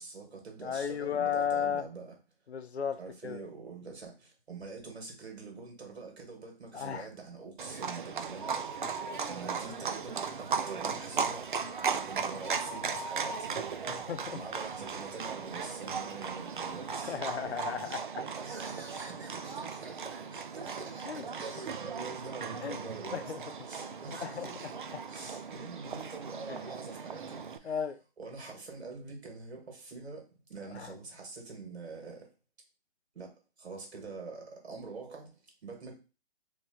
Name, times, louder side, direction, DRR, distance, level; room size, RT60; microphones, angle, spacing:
voice 1, 0.0-2.1 3.0-8.9 9.2-11.4 12.1-13.6 13.9-17.2 17.8-18.0 18.4-23.3 23.7-24.6 25.1-27.8 28.2-30.2 30.5-32.3 33.2-33.3 33.6-35.3 35.6-35.9, right 4 dB, 75° right, 2.0 m, -45 dB
voice 2, 0.6-1.9 2.5-3.4 6.7-7.1 13.9-14.4 17.0-18.2 21.1-21.2 22.6-22.8 23.1-23.4 24.1-24.5 26.5-26.6 27.6-28.0 30.7-30.9, left 7 dB, 80° left, 0.7 m, -34 dB
Livestock farm animals working animals, 7.6-27.6, right 6 dB, 50° right, 0.4 m, -37 dB
sound 1, 8.4-9.9 10.2-10.3 10.8-15.2 15.7-15.8 16.6-16.7 16.9-17.0, right 2 dB, 20° right, 0.9 m, -44 dB
3.2 x 2.9 x 4.3 m
hypercardioid pair, 165°, 32 cm